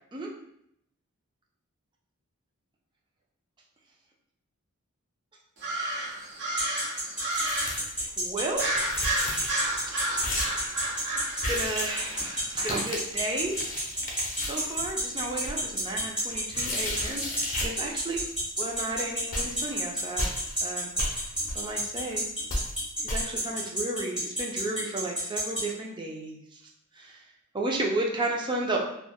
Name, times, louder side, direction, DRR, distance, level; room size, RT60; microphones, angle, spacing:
sound 1, 5.6-7.9 8.5-12.6, right 2 dB, 55° right, 0.8 m, -32 dB
sound 2, 6.6-25.6, right 1 dB, 5° right, 1.2 m, -29 dB
sound 3, 7.3-8.1 8.4-8.5 8.6-9.8 10.2-10.7 11.4-12.2 12.5-17.8 18.1-18.4 18.7-19.0 19.3-20.6 21.0-22.2 22.5-22.8 23.1-23.2, left 1 dB, 40° left, 0.6 m, -35 dB
voice 1, 8.2-9.0 11.2-13.6 14.4-18.2 18.6-20.3 20.6-20.9 21.5-22.3 23.0-26.4 27.0-27.1 27.5-28.8, right 2 dB, 20° right, -1 dB, 0.4 m, -33 dB
3.2 x 2.1 x 2.2 m, 0.75 s
head